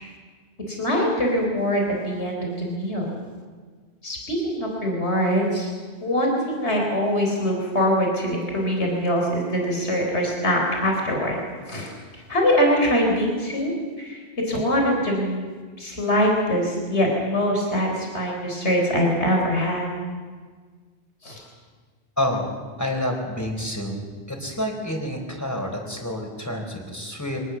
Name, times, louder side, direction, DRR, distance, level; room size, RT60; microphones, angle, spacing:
voice 1, 0.7-3.1 4.0-5.7 6.0-11.3 11.7-11.9 12.3-14.2 14.5-15.4 15.8-19.9 21.2-21.4, equal, 80° left, 0 dB, 4.6 m, -23 dB
voice 2, 22.2-24.0 24.3-27.4, left 1 dB, 15° left, 2 dB, 4.3 m, -28 dB
25.5 x 19.0 x 7.2 m, 1.5 s
omnidirectional pair, 1.1 m